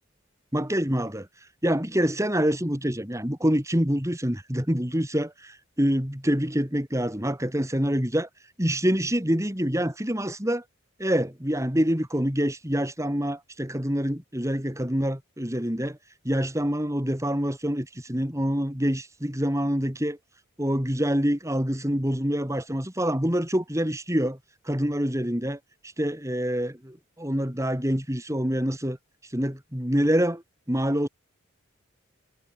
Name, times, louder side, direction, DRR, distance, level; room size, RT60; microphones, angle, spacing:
voice 1, 0.5-1.3 1.6-8.3 8.6-10.6 11.0-16.0 16.2-20.2 20.6-24.4 24.7-25.6 26.0-29.0 29.3-30.4 30.7-31.1, equal, 15° right, 3.8 m, -26 dB
head